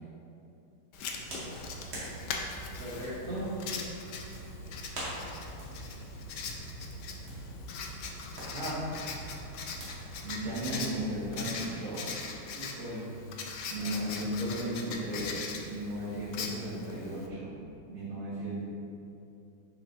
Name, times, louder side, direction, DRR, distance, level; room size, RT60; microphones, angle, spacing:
Writing, 0.9-17.3, left 4 dB, 60° left, 1.3 m, -41 dB
sound 1, 1.2-11.2, right 1 dB, 70° right, 3.0 m, -44 dB
voice 1, 2.8-3.9 12.5-13.1 13.8-14.2, right 1 dB, 50° right, -10 dB, 2.1 m, -38 dB
voice 2, 8.5-8.9 10.2-12.1 13.7-17.6 17.9-18.6, right 1 dB, 90° right, -13 dB, 3.1 m, -35 dB
11.0 x 6.0 x 3.8 m, 2.8 s
omnidirectional pair, 2.3 m